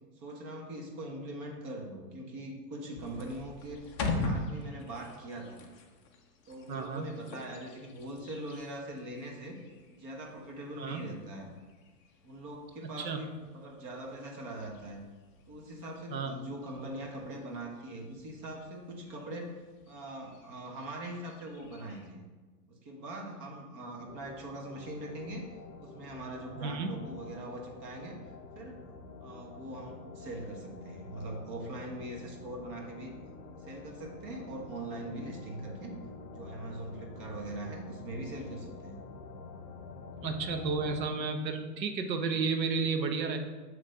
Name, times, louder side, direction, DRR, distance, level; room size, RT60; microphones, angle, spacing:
voice 1, 0.2-5.6 6.5-9.6 9.9-11.5 12.2-15.0 15.5-19.5 19.9-22.2 22.7-25.5 25.8-28.2 28.5-28.9 29.2-33.2 33.6-35.9 36.3-39.0, right 1 dB, 40° right, 1 dB, 1.4 m, -42 dB
sound 1, 3.0-22.1, left 3 dB, 20° left, 0.3 m, -43 dB
voice 2, 6.7-7.1 10.8-11.0 12.8-13.2 16.1-16.4 26.6-26.9 40.2-43.4, right 4 dB, 85° right, 6 dB, 1.0 m, -32 dB
sound 2, 24.1-41.1, left 4 dB, 45° left, 0.8 m, -47 dB
7.4 x 3.2 x 5.1 m, 1.3 s
hypercardioid pair, 125°, 49 cm